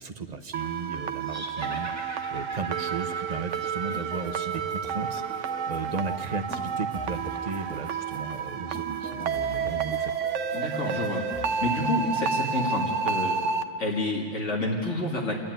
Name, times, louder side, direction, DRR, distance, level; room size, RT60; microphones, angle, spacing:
voice 1, 0.0-10.1, right 4 dB, 35° right, 7 dB, 1.0 m, -35 dB
sound 1, 0.5-13.6, right 6 dB, 85° right, 1.1 m, -30 dB
sound 2, 1.2-4.6, equal, 15° right, 1.9 m, -43 dB
sound 3, 3.5-11.5, left 2 dB, 5° left, 1.1 m, -45 dB
voice 2, 10.5-13.4 13.8-15.4, left 1 dB, 85° left, -2 dB, 2.5 m, -29 dB
27.5 x 11.0 x 9.2 m, 2.2 s
omnidirectional pair, 1.2 m